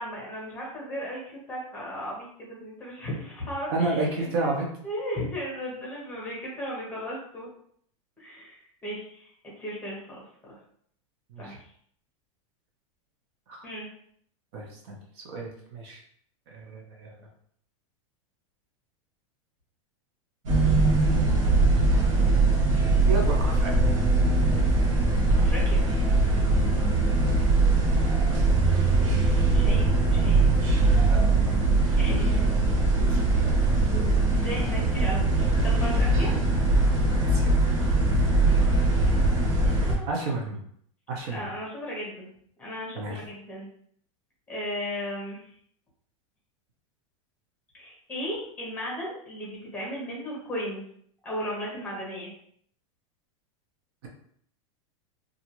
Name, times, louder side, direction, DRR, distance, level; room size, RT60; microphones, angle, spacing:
voice 1, 0.0-4.5 4.8-7.5 8.2-9.3 9.6-10.5 11.4-11.5 13.6-13.9 25.4-25.8 29.5-30.5 32.0-32.4 34.3-35.2 35.6-36.4 39.6-40.3 41.3-42.3 42.6-43.7 44.5-45.5 47.7-50.8 51.2-52.3, equal, 10° left, -4 dB, 1.0 m, -36 dB
voice 2, 3.7-4.7 11.3-11.6 13.5-13.6 14.5-15.0 15.3-16.0 16.5-17.1 23.1-23.8 33.1-33.6 37.2-37.6 40.0-40.6 41.1-41.5 43.0-43.2, right 2 dB, 50° right, 0 dB, 0.7 m, -31 dB
sound 1, 20.5-40.0, right 2 dB, 80° right, 0.9 m, -21 dB
2.5 x 2.4 x 2.9 m, 0.64 s
supercardioid pair, 160°, 17 cm